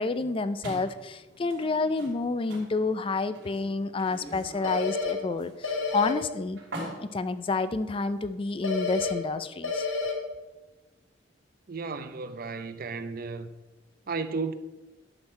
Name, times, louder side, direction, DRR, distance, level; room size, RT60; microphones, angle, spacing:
voice 1, 0.0-6.6 7.0-9.9, left 3 dB, 30° left, 0.4 m, -29 dB
sound 1, 0.6-8.4, right 1 dB, 90° right, 3.1 m, -45 dB
sound 2, 4.6-5.1 5.6-6.1 8.6-9.1 9.6-10.1, left 3 dB, 80° left, 1.5 m, -29 dB
voice 2, 11.7-13.5 14.1-14.5, right 4 dB, 50° right, 0.6 m, -33 dB
10.5 x 6.2 x 4.4 m
head